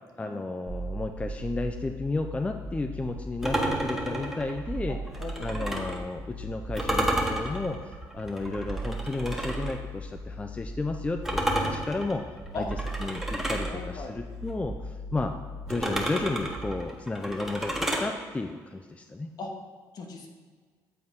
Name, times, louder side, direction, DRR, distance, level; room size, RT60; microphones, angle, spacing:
voice 1, 0.2-5.0 5.4-12.2 12.5-12.7 13.0-15.4 15.7-19.3, left 3 dB, 15° left, 5 dB, 0.4 m, -33 dB
sound 1, 0.7-16.7, right 1 dB, 50° right, 0.9 m, -38 dB
sound 2, 3.4-6.0 6.7-9.7 11.2-13.7 15.7-18.1, right 1 dB, 5° right, 1.0 m, -31 dB
voice 2, 4.9-5.5 12.5-12.7 13.7-14.1 19.4-19.5 19.9-20.3, left 3 dB, 55° left, 2 dB, 1.1 m, -38 dB
7.7 x 4.0 x 3.6 m, 1.5 s
supercardioid pair, 75°, 8 cm